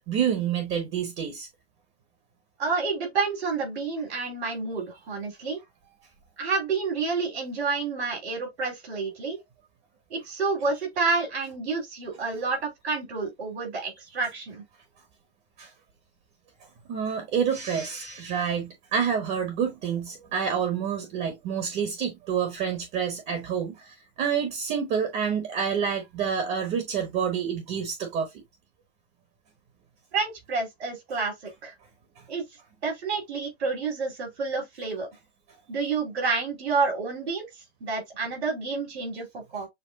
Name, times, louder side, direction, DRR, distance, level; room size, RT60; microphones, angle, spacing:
voice 1, 0.1-1.5 15.6-15.7 16.9-28.3, right 7 dB, 30° right, 1.1 m, -28 dB
voice 2, 2.6-5.6 6.4-9.4 10.1-14.6 30.1-31.3 31.6-31.7 32.3-32.4 32.8-35.1 35.7-37.5 37.8-39.7, right 4 dB, 80° right, 3.4 m, -29 dB
6.8 x 2.5 x 2.3 m
hypercardioid pair, 140°, 32 cm